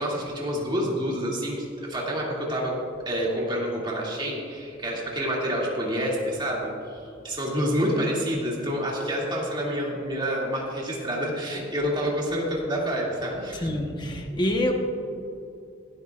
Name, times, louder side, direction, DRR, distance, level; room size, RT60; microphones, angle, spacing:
voice 1, 0.0-2.7 3.1-13.7, equal, 25° right, -4 dB, 2.4 m, -28 dB
voice 2, 13.5-14.7, left 1 dB, 25° left, 2 dB, 1.0 m, -26 dB
17.0 x 12.0 x 2.4 m, 2.7 s
head